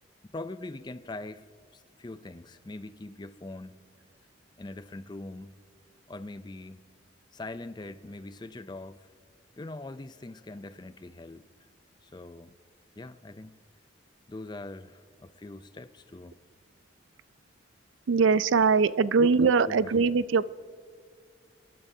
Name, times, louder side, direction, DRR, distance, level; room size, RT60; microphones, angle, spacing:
voice 1, 0.3-1.4 1.7-3.8 4.6-5.5 6.1-6.8 7.3-9.1 9.6-11.4 12.0-12.6 13.0-13.6 14.3-16.4 19.2-19.8, left 2 dB, 20° left, 0.4 m, -42 dB
voice 2, 18.1-20.4, right 5 dB, 80° right, 0.4 m, -22 dB
26.5 x 12.5 x 2.7 m
head